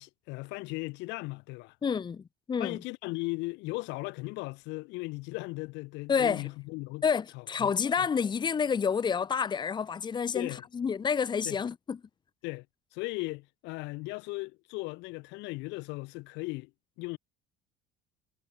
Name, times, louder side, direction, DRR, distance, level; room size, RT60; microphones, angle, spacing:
voice 1, 0.0-1.8 2.6-7.0 7.3-7.7 8.0-8.1 10.3-10.6 11.5-11.6 12.4-12.7 12.9-16.7 17.0-17.2, left 24 dB, 70° left, 1.7 m, -37 dB
voice 2, 1.8-2.8 6.1-6.5 7.0-12.0, left 6 dB, 25° left, 1.3 m, -29 dB
cardioid pair, 120°, 19 cm